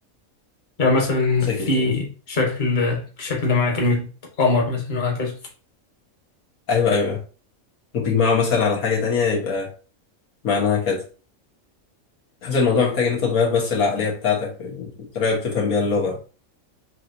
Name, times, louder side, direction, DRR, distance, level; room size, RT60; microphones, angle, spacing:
voice 1, 0.8-4.1 4.4-5.4, left 3 dB, 35° left, 1.3 m, -22 dB
voice 2, 1.5-1.9 6.7-7.2 7.9-9.7 10.4-11.0 12.4-16.2, left 5 dB, 90° left, 1.8 m, -22 dB
6.4 x 3.0 x 2.7 m
omnidirectional pair, 1.4 m